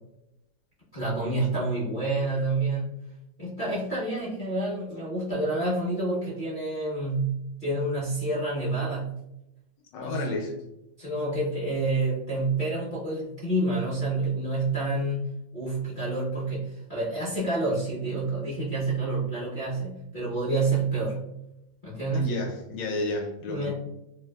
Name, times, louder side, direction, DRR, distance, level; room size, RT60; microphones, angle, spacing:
voice 1, 0.9-3.0 3.4-9.1 10.0-10.3 11.0-21.2 21.8-22.3 23.5-23.7, right 2 dB, 45° left, -10 dB, 0.6 m, -28 dB
voice 2, 9.9-10.6 22.1-23.7, left 2 dB, 75° left, 1 dB, 1.2 m, -31 dB
3.2 x 2.5 x 2.2 m, 0.88 s
omnidirectional pair, 2.1 m